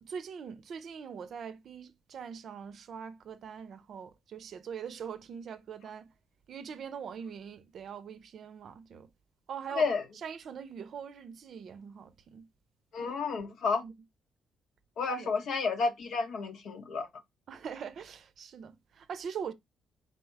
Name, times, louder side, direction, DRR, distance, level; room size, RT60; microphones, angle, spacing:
voice 1, 0.0-6.1 6.5-9.1 9.5-9.9 10.2-12.5 13.0-13.2 13.8-13.9 15.2-15.3 17.5-19.5, right 7 dB, 60° right, 0.5 m, -42 dB
voice 2, 9.7-10.0 12.9-13.8 15.0-17.1, left 4 dB, 70° left, 0.9 m, -31 dB
4.1 x 2.1 x 4.5 m
cardioid pair, 90°, 0 cm